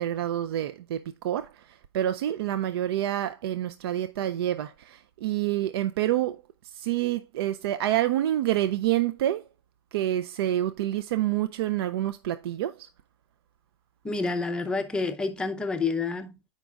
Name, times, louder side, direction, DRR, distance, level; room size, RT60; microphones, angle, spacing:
voice 1, 0.0-9.5 9.9-12.9, right 13 dB, 65° right, 0.5 m, -28 dB
voice 2, 14.0-16.5, left 4 dB, 5° left, 0.5 m, -29 dB
7.5 x 5.2 x 3.5 m
supercardioid pair, 155°, 14 cm